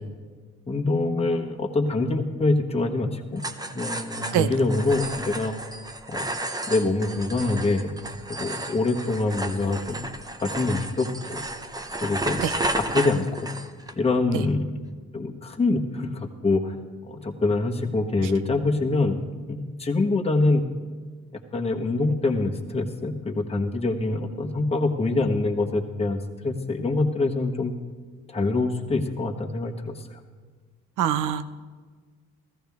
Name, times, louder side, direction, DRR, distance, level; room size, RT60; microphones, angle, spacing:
voice 1, 0.7-3.4 3.7-5.5 6.1-6.3 6.7-7.9 8.3-10.0 10.4-11.4 12.0-12.4 12.8-13.3 13.9-14.6 15.1-16.7 17.0-19.2 19.5-20.6 21.3-27.7 28.3-30.2, left 3 dB, 20° left, 1 dB, 1.2 m, -25 dB
sound 1, 3.4-13.9, right 1 dB, 15° right, 0.8 m, -33 dB
voice 2, 31.0-31.4, right 10 dB, 90° right, 13 dB, 0.6 m, -23 dB
14.5 x 14.5 x 3.5 m, 1.5 s
cardioid pair, 90°, 30 cm